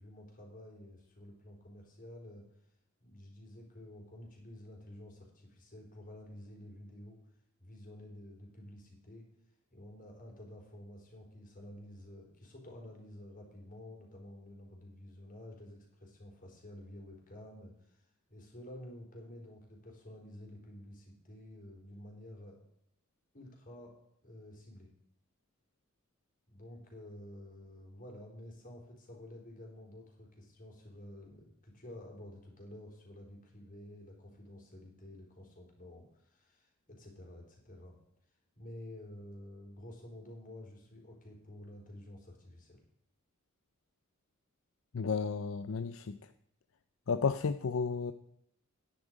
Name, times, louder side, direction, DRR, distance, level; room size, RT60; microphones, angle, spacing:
voice 1, 0.0-2.4 3.0-7.2 7.6-9.3 9.7-22.6 23.3-23.9 24.2-24.9 26.5-38.0 38.3-42.8, left 1 dB, 40° left, 1 dB, 3.9 m, -51 dB
voice 2, 44.9-46.2 47.1-48.1, left 5 dB, 70° left, 12 dB, 0.5 m, -32 dB
10.5 x 10.0 x 5.1 m, 0.75 s
head